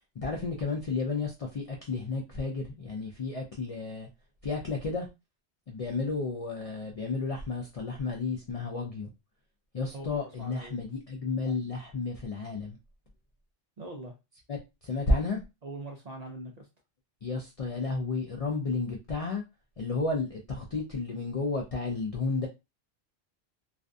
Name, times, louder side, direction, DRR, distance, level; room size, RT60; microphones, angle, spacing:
voice 1, 0.2-4.1 4.4-5.1 5.7-9.1 9.7-12.8 14.5-15.4 17.2-19.4 19.8-22.5, left 3 dB, 60° left, 0.3 m, -32 dB
voice 2, 10.4-10.8 13.8-14.1 15.6-16.7, right 2 dB, 55° right, 0.4 m, -42 dB
2.4 x 2.2 x 2.5 m
omnidirectional pair, 1.2 m